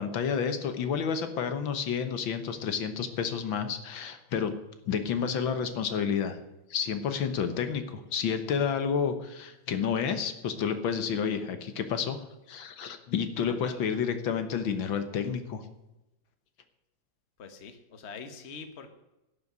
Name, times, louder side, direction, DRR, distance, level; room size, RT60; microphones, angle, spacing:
voice 1, 0.0-4.5 4.9-6.4 6.7-15.6, left 7 dB, 80° left, 9 dB, 1.9 m, -30 dB
voice 2, 13.5-13.9 17.4-18.9, left 5 dB, 40° left, 8 dB, 1.4 m, -44 dB
11.5 x 6.9 x 9.2 m, 0.96 s
omnidirectional pair, 2.1 m